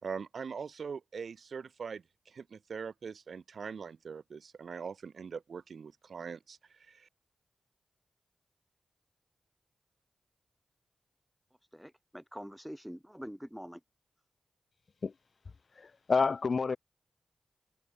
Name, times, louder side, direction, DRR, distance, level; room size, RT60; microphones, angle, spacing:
voice 1, 0.0-6.6 6.9-7.1, right 6 dB, 70° right, 1.7 m, -42 dB
voice 2, 11.7-13.8, equal, ahead, 1.1 m, -45 dB
voice 3, 15.8-16.8, left 4 dB, 60° left, 1.5 m, -29 dB
supercardioid pair, 40°, 0 cm